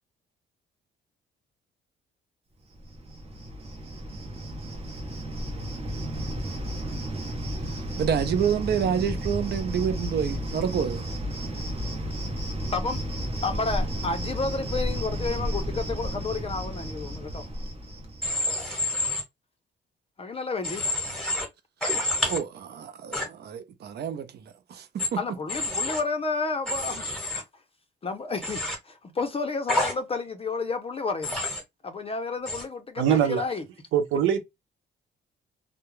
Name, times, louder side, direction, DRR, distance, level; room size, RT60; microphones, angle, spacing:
Cricket, 2.7-18.4, equal, 30° right, 0.8 m, -32 dB
voice 1, 8.0-11.0 22.3-24.3 24.7-25.2, right 8 dB, 55° right, 0.6 m, -28 dB
voice 2, 13.4-17.5 20.2-20.8 25.2-27.1 27.3-27.4 28.0-31.4 31.8-33.6, left 4 dB, 30° left, 0.5 m, -31 dB
Human voice / Train, 18.2-19.2 20.6-21.5 21.8-22.4 23.1-23.3 25.0-25.1 25.5-26.0 26.7-27.4 28.4-28.8 29.7-29.9 31.2-31.6 32.5-32.6, left 2 dB, 5° left, 1.2 m, -28 dB
voice 3, 33.0-33.5 33.9-34.4, right 9 dB, 90° right, 0.7 m, -22 dB
2.3 x 2.0 x 3.0 m
cardioid pair, 90°, 20 cm